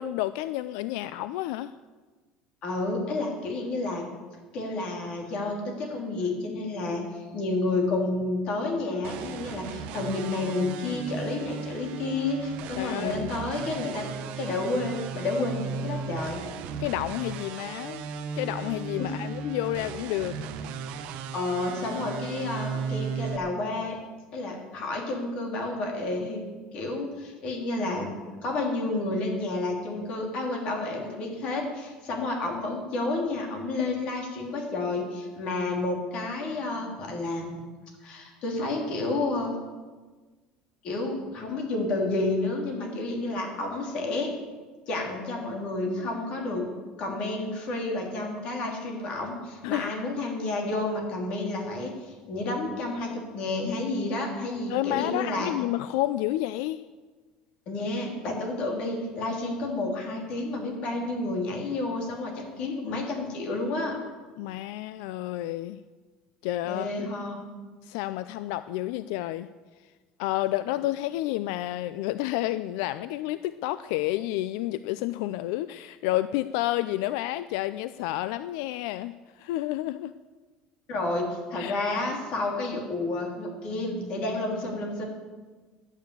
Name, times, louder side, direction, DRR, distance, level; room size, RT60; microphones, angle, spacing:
voice 1, 0.0-1.7 12.8-13.3 16.8-18.0 18.4-20.4 49.6-49.9 54.7-56.8 64.4-65.8 66.4-66.9 67.8-69.5 70.2-80.1 81.5-81.8, left 15 dB, 80° left, 14 dB, 0.4 m, -30 dB
voice 2, 2.6-4.1 4.5-14.1 14.4-16.5 19.0-19.1 21.3-24.0 24.3-26.4 26.7-28.1 28.4-37.6 38.0-39.5 40.8-44.3 44.9-46.7 47.0-55.5 57.7-64.0 66.6-67.4 80.9-85.1, left 2 dB, 45° left, 1 dB, 3.1 m, -30 dB
sound 1, 9.0-23.4, right 6 dB, 60° right, 0.9 m, -36 dB
11.5 x 9.0 x 8.2 m, 1.4 s
cardioid pair, 165°, 3 cm